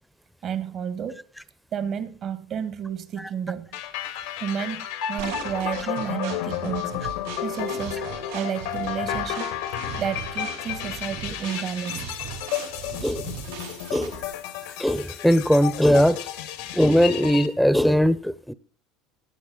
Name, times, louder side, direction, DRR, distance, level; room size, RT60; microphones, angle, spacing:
voice 1, 0.4-1.2 1.7-3.8 4.4-7.0 7.4-8.1 8.3-9.6 10.0-12.1, right 8 dB, 50° right, 1.5 m, -31 dB
sound 1, 3.7-17.5, left 11 dB, 80° left, 2.0 m, -32 dB
sound 2, 5.2-14.3, right 6 dB, 85° right, 6.1 m, -38 dB
voice 2, 14.8-16.2 16.7-18.5, equal, ahead, 0.9 m, -19 dB
16.0 x 9.6 x 4.1 m
hypercardioid pair, 85°, 0 cm